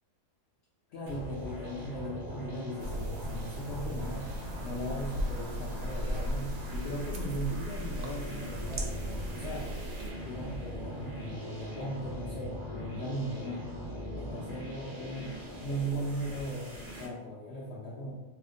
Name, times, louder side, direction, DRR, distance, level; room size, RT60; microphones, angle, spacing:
voice 1, 0.9-4.3 4.6-8.9 9.3-9.7 10.2-13.6 14.2-18.1, right 1 dB, 65° left, -4 dB, 0.7 m, -38 dB
sound 1, 1.1-17.1, equal, 30° right, 0.5 m, -42 dB
sound 2, 2.8-10.1, equal, 75° right, 1.0 m, -37 dB
2.8 x 2.1 x 3.6 m, 1.0 s
omnidirectional pair, 1.5 m